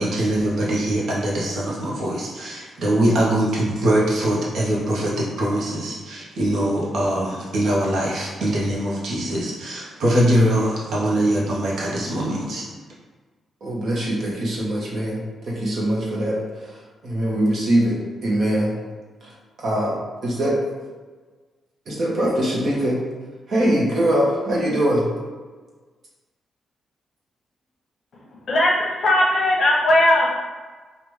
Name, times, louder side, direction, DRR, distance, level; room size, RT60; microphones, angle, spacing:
voice 1, 0.0-12.6, right 1 dB, 65° right, -5 dB, 0.9 m, -22 dB
voice 2, 13.6-16.4 17.0-18.7 19.6-20.6 21.9-23.0 23.5-25.1, right 1 dB, 45° right, -3 dB, 1.0 m, -22 dB
voice 3, 28.5-30.3, left 1 dB, 45° left, -3 dB, 0.8 m, -18 dB
5.0 x 2.5 x 3.1 m, 1.4 s
wide cardioid pair, 170°, 0 cm